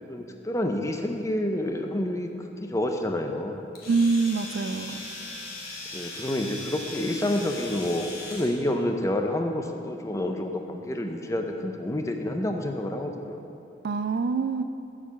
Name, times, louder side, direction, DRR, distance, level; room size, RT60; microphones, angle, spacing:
voice 1, 0.1-2.3 2.6-3.7 5.9-13.5, left 1 dB, 15° left, 4 dB, 0.5 m, -28 dB
Domestic sounds home sounds, 3.8-8.6, left 2 dB, 50° left, 1.6 m, -39 dB
voice 2, 3.9-5.0 13.8-14.6, right 4 dB, 55° right, 10 dB, 0.3 m, -25 dB
7.4 x 6.7 x 7.0 m, 2.7 s
head